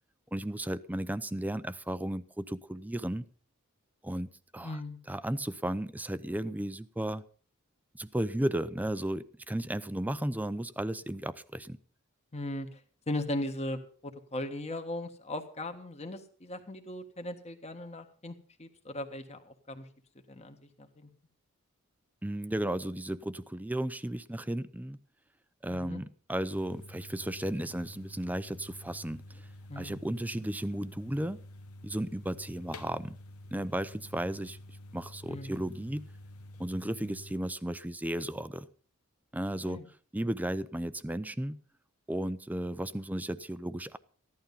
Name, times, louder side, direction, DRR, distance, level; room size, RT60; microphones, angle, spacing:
voice 1, 0.3-3.2 4.0-4.8 5.1-7.2 7.9-11.8 22.2-25.0 25.6-29.4 29.8-31.4 31.8-33.2 33.5-34.6 34.9-36.0 36.6-38.7 39.3-39.8 40.1-41.6 42.1-44.0, right 1 dB, 5° right, 14 dB, 0.6 m, -34 dB
voice 2, 4.6-5.0 12.3-19.9 20.3-21.1 25.7-26.0 29.7-29.9 35.3-35.6 39.6-39.9, left 1 dB, 30° left, 6 dB, 1.5 m, -38 dB
sound 1, 26.5-37.4, left 1 dB, 90° left, 1.1 m, -49 dB
15.0 x 11.5 x 5.5 m, 0.42 s
head